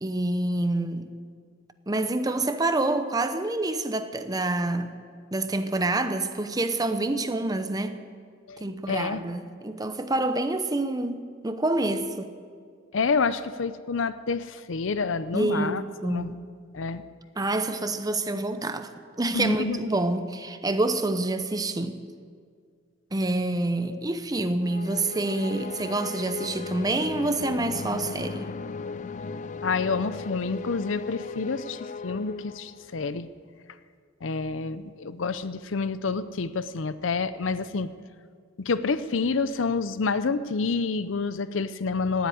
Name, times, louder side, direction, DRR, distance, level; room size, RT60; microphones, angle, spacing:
voice 1, 0.0-1.1 1.9-4.9 5.3-8.0 8.6-12.3 15.3-16.4 17.4-18.9 19.2-22.0 23.1-28.5, right 2 dB, 20° right, 0.8 m, -27 dB
voice 2, 8.5-9.2 12.9-16.3 16.7-17.0 19.3-19.8 23.9-24.0 29.6-33.3 34.2-37.9 38.6-42.3, left 4 dB, 90° left, 0.6 m, -28 dB
sound 1, 24.6-33.0, left 4 dB, 40° left, 0.4 m, -37 dB
18.0 x 8.2 x 9.3 m
head